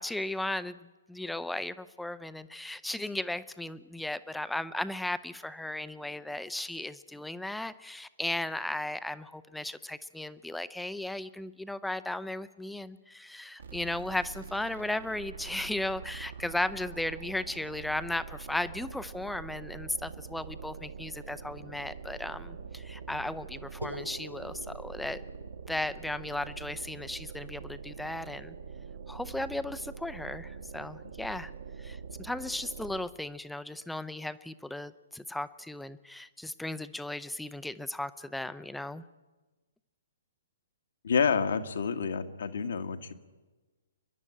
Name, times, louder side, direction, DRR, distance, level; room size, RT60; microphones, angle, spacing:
voice 1, 0.0-25.2 25.7-28.6 29.1-31.5 31.8-39.0, left 1 dB, 5° left, 14 dB, 0.6 m, -36 dB
sound 1, 13.6-33.2, right 6 dB, 65° right, 1.7 m, -44 dB
sound 2, 23.8-28.2, equal, 85° right, 1.2 m, -47 dB
voice 2, 41.0-43.1, left 6 dB, 60° left, 8 dB, 1.5 m, -28 dB
29.5 x 11.0 x 8.6 m, 1.2 s
figure-of-eight pair, 125°, 0 cm